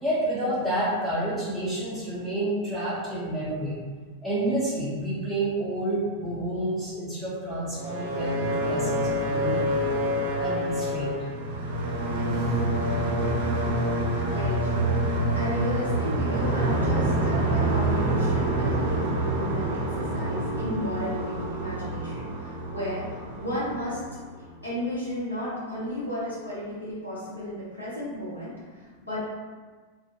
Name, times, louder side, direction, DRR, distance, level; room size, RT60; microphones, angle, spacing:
voice 1, 0.0-3.8 4.2-9.9 10.4-11.2 12.3-12.6, right 1 dB, 5° right, -10 dB, 0.5 m, -29 dB
sound 1, 7.7-24.6, right 1 dB, 50° right, 0.4 m, -27 dB
voice 2, 14.2-24.0 24.6-29.2, equal, 80° left, -9 dB, 0.8 m, -34 dB
2.2 x 2.1 x 2.9 m, 1.4 s
figure-of-eight pair, 90°, 0 cm